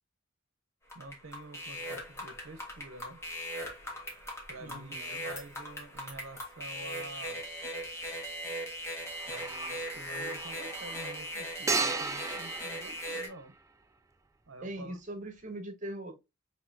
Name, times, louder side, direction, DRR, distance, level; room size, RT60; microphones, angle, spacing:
sound 1, 0.9-13.3, equal, 15° left, 1.4 m, -39 dB
voice 1, 0.9-3.2 4.5-7.4 9.3-13.5 14.5-15.0, right 2 dB, 75° right, 0.7 m, -48 dB
voice 2, 4.6-5.2 14.6-16.1, right 1 dB, 40° right, 1.2 m, -41 dB
sound 2, 6.3-6.5 9.0-13.8, right 4 dB, 15° right, 0.4 m, -37 dB
5.2 x 3.2 x 2.6 m
head